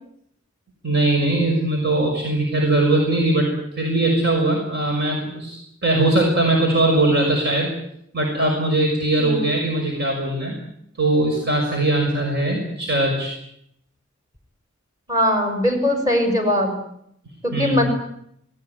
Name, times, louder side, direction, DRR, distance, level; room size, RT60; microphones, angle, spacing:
voice 1, 0.8-7.7 8.1-10.5 11.0-13.3 17.5-17.8, right 2 dB, 55° right, 1 dB, 6.2 m, -20 dB
voice 2, 9.1-9.4 15.1-16.8 17.4-17.9, equal, 20° right, 5 dB, 6.6 m, -20 dB
28.5 x 19.5 x 9.5 m, 0.74 s
head